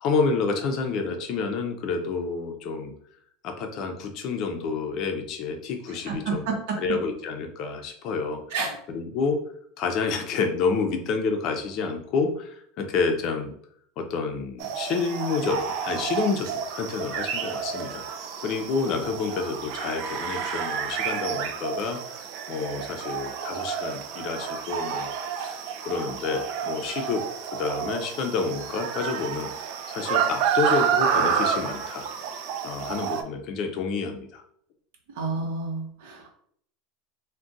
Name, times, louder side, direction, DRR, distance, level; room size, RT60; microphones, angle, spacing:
voice 1, 0.0-2.9 3.4-6.5 6.8-8.4 8.9-9.4 9.8-13.5 14.0-27.2 27.5-29.5 29.9-32.1 32.6-34.4, left 4 dB, 45° left, 5 dB, 0.5 m, -29 dB
voice 2, 6.1-6.8 8.5-8.8 35.1-36.3, right 4 dB, 75° right, 0 dB, 0.8 m, -30 dB
sound 1, 14.6-33.2, right 7 dB, 55° right, 0.3 m, -30 dB
2.4 x 2.2 x 3.8 m, 0.65 s
supercardioid pair, 145°, 0 cm